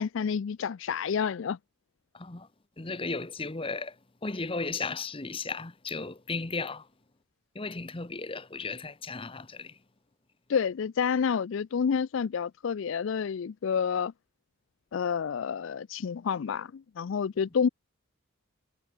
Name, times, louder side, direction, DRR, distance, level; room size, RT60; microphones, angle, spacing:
voice 1, 0.0-1.6 10.5-14.1 14.9-17.7, left 6 dB, 60° left, 0.4 m, -29 dB
voice 2, 2.1-2.5 2.8-6.9 7.5-9.8, left 3 dB, 25° left, 1.0 m, -35 dB
head